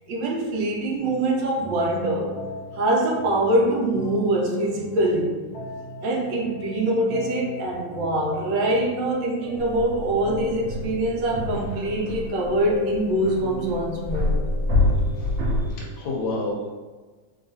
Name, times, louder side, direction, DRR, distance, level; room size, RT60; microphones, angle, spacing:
voice 1, 0.1-2.4 2.7-5.4 6.0-14.3, right 1 dB, 80° right, -2 dB, 1.3 m, -24 dB
sound 1, 1.0-15.9, left 2 dB, 25° left, 0.8 m, -38 dB
sound 2, 9.6-15.8, left 1 dB, 65° right, 0.8 m, -27 dB
voice 2, 15.6-16.7, left 2 dB, 75° left, -1 dB, 1.1 m, -29 dB
3.0 x 2.7 x 2.7 m, 1.3 s
omnidirectional pair, 2.1 m